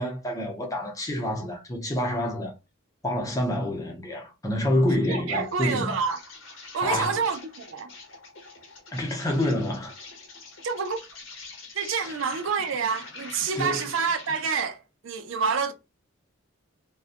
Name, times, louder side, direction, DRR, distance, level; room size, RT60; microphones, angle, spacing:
voice 1, 0.0-2.5 3.0-6.0 6.8-7.3 8.9-10.0 12.0-12.2 13.6-13.9, left 1 dB, 15° left, 0.6 m, -27 dB
voice 2, 5.1-6.2 6.7-7.9 10.6-11.0 11.7-15.7, right 5 dB, 70° right, 0.5 m, -28 dB
Insect, 5.3-14.7, left 3 dB, 70° left, 0.9 m, -45 dB
2.6 x 2.2 x 2.5 m
head